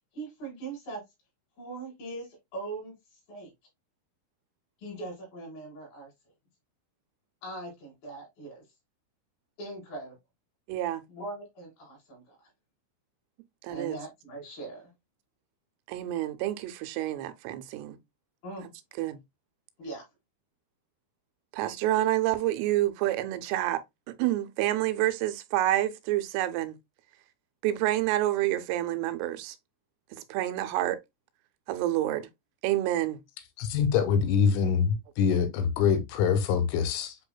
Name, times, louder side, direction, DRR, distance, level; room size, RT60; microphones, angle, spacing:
voice 1, 0.1-1.0 1.6-3.5 4.8-6.1 7.4-8.6 9.6-10.2 11.1-12.5 13.7-14.9 18.4-18.7 19.8-20.1, right 2 dB, 55° left, 3.6 m, -40 dB
voice 2, 10.7-11.0 13.6-14.0 15.9-18.0 19.0-19.2 21.5-23.8 24.2-26.8 27.6-29.6 30.1-31.0 31.7-32.3 32.6-33.2, right 14 dB, 90° right, 3.1 m, -28 dB
voice 3, 33.6-37.2, left 6 dB, 85° left, 3.1 m, -25 dB
8.1 x 2.7 x 2.2 m
omnidirectional pair, 5.6 m